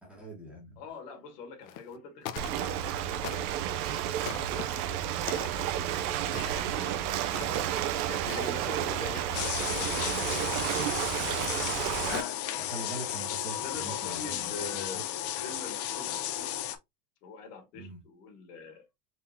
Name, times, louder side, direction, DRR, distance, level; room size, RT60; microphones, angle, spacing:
voice 1, 0.0-0.8 9.2-9.4 12.6-15.0 15.5-15.6 17.7-18.0, right 2 dB, 5° right, 1.7 m, -43 dB
voice 2, 0.8-3.0 3.4-3.9 4.6-5.1 6.0-7.1 7.5-7.8 8.1-11.6 11.9-12.4 13.5-15.1 15.4-16.5 17.2-18.9, left 4 dB, 80° left, 2.2 m, -45 dB
sound 1, 1.6-2.0 2.2-2.9 3.2-3.7 4.2-4.6 5.3-5.6 6.2-6.9 7.2-7.7 8.2-8.5 9.3-9.7 10.2-10.8, left 11 dB, 60° left, 0.9 m, -43 dB
Ocean, 2.4-12.2, right 11 dB, 65° right, 0.7 m, -31 dB
sound 2, 9.3-16.8, left 11 dB, 30° left, 0.5 m, -34 dB
4.2 x 3.9 x 2.8 m
supercardioid pair, 165°, 48 cm